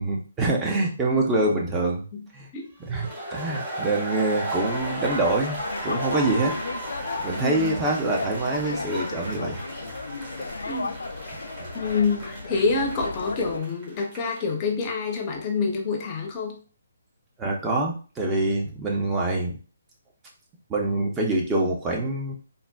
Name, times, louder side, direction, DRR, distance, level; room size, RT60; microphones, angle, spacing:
voice 1, 0.0-2.0 2.3-2.5 2.8-5.6 5.8-6.6 7.2-9.6 10.4-10.5 11.6-11.8 17.4-19.6 20.7-22.3, right 2 dB, 15° right, -1 dB, 0.6 m, -25 dB
sound 1, 2.9-14.5, right 1 dB, 30° right, 1.3 m, -35 dB
sound 2, 4.6-13.6, left 3 dB, 90° left, 0.3 m, -35 dB
voice 2, 7.4-7.8 10.7-11.0 11.7-16.6, left 4 dB, 25° left, 1 dB, 0.6 m, -27 dB
3.8 x 2.1 x 2.3 m, 0.37 s
hypercardioid pair, 155°, 0 cm